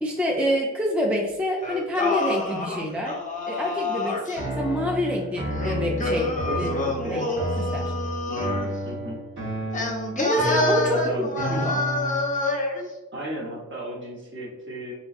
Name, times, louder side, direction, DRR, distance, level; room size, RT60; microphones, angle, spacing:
voice 1, 0.0-3.2 3.5-6.7 7.1-7.9 10.2-11.0 11.5-11.8, equal, 5° right, 0 dB, 0.3 m, -27 dB
Singing, 1.6-4.4 5.5-8.7 9.7-12.8, left 2 dB, 25° left, 0.7 m, -27 dB
sound 1, 4.4-12.4, right 1 dB, 75° right, 1.5 m, -31 dB
voice 2, 6.5-7.3 8.3-9.2 10.9-11.3 13.1-14.9, right 1 dB, 40° right, -2 dB, 1.0 m, -35 dB
3.7 x 3.0 x 2.5 m, 1.1 s
cardioid pair, 105°, 31 cm